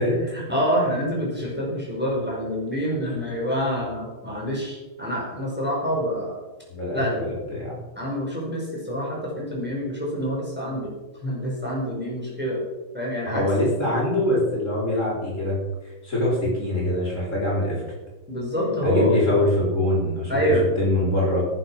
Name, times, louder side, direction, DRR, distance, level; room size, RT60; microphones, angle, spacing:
voice 1, 0.3-6.4 6.9-7.2 8.0-10.9 11.2-12.6 12.9-13.4 18.3-19.1 20.3-20.7, equal, 5° right, -4 dB, 4.9 m, -26 dB
voice 2, 6.7-7.8 13.3-15.6 16.0-17.8 18.8-20.3 20.8-21.5, left 1 dB, 40° left, -4 dB, 5.3 m, -23 dB
18.5 x 8.0 x 6.2 m, 1.2 s
omnidirectional pair, 2.0 m